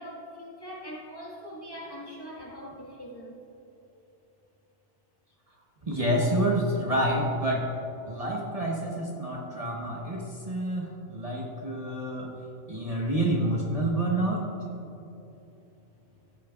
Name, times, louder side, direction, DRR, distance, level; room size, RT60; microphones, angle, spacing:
voice 1, 0.0-3.4, equal, 20° left, -4 dB, 1.5 m, -42 dB
voice 2, 5.9-7.7 8.1-12.3 12.7-14.4, right 1 dB, 35° right, -3 dB, 1.1 m, -28 dB
15.0 x 9.1 x 2.3 m, 3.0 s
omnidirectional pair, 1.2 m